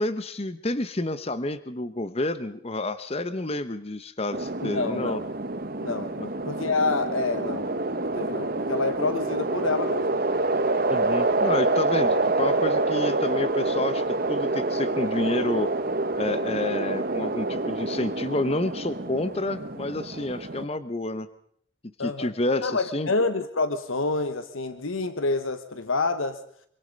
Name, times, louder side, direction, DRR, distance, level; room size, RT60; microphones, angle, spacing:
voice 1, 0.0-5.2 6.2-6.3 10.9-15.7 16.2-21.3 22.0-23.1, left 2 dB, 30° left, 12 dB, 0.9 m, -29 dB
sound 1, 4.3-20.6, right 2 dB, 45° right, 1.2 m, -27 dB
voice 2, 4.6-5.2 5.8-6.1 6.4-7.8 8.1-10.2 22.0-22.3 22.6-26.4, left 3 dB, 85° left, 11 dB, 1.2 m, -27 dB
26.0 x 24.5 x 5.3 m, 0.66 s
head